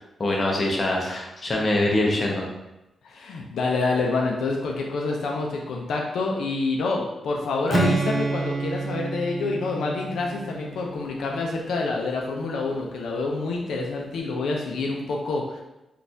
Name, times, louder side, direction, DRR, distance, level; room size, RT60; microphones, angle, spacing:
voice 1, 0.2-2.5, left 1 dB, 35° left, -2 dB, 0.7 m, -24 dB
voice 2, 3.0-15.6, left 3 dB, 85° left, -1 dB, 0.4 m, -27 dB
Strum, 7.7-11.8, right 3 dB, 30° right, 0.5 m, -29 dB
4.0 x 2.3 x 2.6 m, 0.96 s
cardioid pair, 110°, 0 cm